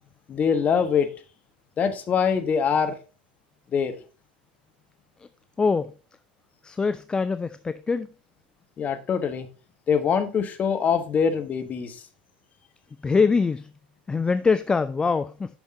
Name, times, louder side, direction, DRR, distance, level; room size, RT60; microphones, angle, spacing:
voice 1, 0.3-1.1 1.8-3.0 3.7-4.0 8.8-9.5 9.9-12.0, left 6 dB, 30° left, 1.3 m, -23 dB
voice 2, 5.6-5.9 6.6-8.1 13.0-13.7 14.1-15.6, left 4 dB, 15° left, 0.4 m, -23 dB
8.9 x 6.3 x 3.8 m
hypercardioid pair, 85°, 5 cm